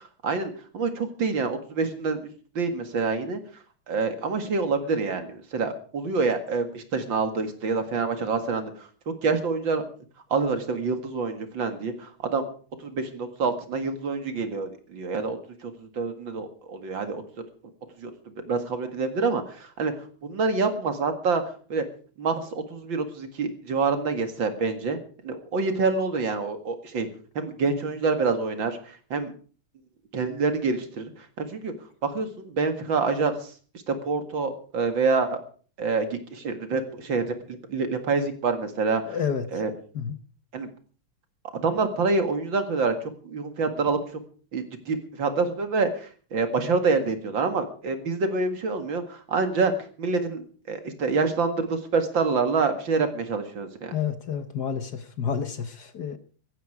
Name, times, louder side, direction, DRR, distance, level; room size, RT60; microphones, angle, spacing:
voice 1, 0.2-2.2 2.6-3.4 3.9-8.7 9.1-9.8 10.3-12.5 12.8-17.2 18.0-18.1 18.5-19.9 20.2-21.4 21.7-21.8 22.2-25.0 25.2-27.1 27.4-28.8 29.1-29.3 30.1-31.0 31.4-31.7 32.0-33.3 33.9-35.4 35.8-39.2 39.5-39.7 40.5-40.7 41.6-42.9 43.2-44.0 44.5-49.7 50.0-54.0, right 4 dB, 60° right, 7 dB, 2.6 m, -26 dB
voice 2, 39.1-39.4 39.9-40.2 53.9-56.2, left 7 dB, 55° left, 10 dB, 1.5 m, -29 dB
15.5 x 14.5 x 4.8 m, 0.41 s
omnidirectional pair, 2.4 m